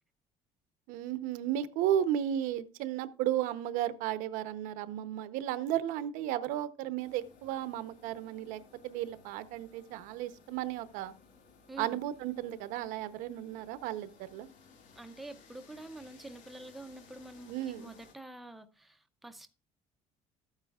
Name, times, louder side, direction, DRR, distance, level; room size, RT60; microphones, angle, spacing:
voice 1, 0.9-11.1 11.8-14.5 17.5-17.9, right 11 dB, 85° right, 0.8 m, -34 dB
sound 1, 7.0-18.1, left 5 dB, 65° left, 2.2 m, -59 dB
voice 2, 11.7-12.0 15.0-19.6, right 2 dB, ahead, 0.5 m, -47 dB
13.5 x 8.9 x 2.4 m
cardioid pair, 170°, 14 cm